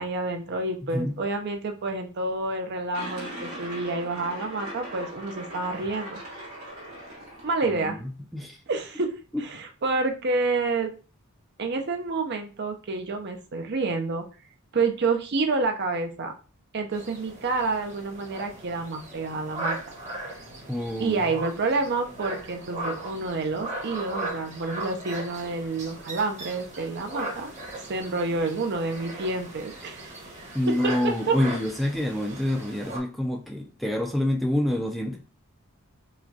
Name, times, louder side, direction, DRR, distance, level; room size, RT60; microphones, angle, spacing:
voice 1, 0.0-6.2 7.4-8.0 8.7-9.1 9.4-10.9 11.6-14.3 14.7-16.3 16.7-19.9 21.0-27.5 27.9-30.1 30.7-31.4, right 3 dB, 50° right, 5 dB, 0.6 m, -28 dB
sound 1, 2.9-7.9, right 1 dB, 75° right, 1.9 m, -39 dB
voice 2, 7.8-8.6 9.3-9.4 20.7-21.2 30.5-35.2, left 1 dB, ahead, 1 dB, 0.4 m, -27 dB
sound 2, 16.9-33.0, right 2 dB, 30° right, 1.1 m, -38 dB
4.9 x 2.2 x 2.7 m, 0.35 s
head